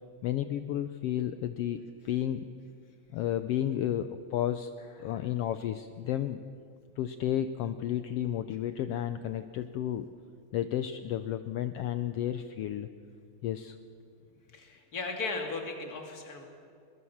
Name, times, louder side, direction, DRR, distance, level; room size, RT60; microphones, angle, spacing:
voice 1, 0.2-2.5 3.1-4.7 5.0-6.4 7.0-10.1 10.5-12.9 13.4-13.8, left 11 dB, 85° left, 11 dB, 1.3 m, -32 dB
voice 2, 14.5-16.4, left 3 dB, 30° left, 3 dB, 2.7 m, -36 dB
21.5 x 20.5 x 7.2 m, 2.3 s
omnidirectional pair, 3.4 m